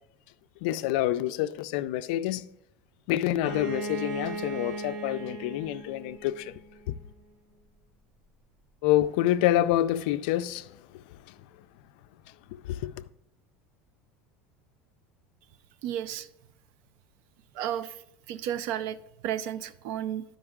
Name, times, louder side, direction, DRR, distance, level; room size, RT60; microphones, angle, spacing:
voice 1, 0.6-2.5 3.1-6.5 6.9-7.0 8.8-10.7 11.3-11.4 12.7-12.9, left 13 dB, 70° left, 0.3 m, -27 dB
Bowed string instrument, 3.4-7.1, right 2 dB, 85° right, 3.3 m, -37 dB
voice 2, 15.8-16.3 17.5-18.0 18.3-19.0 19.2-20.2, right 10 dB, 60° right, 0.4 m, -32 dB
12.0 x 5.2 x 3.6 m
cardioid pair, 160°, 5 cm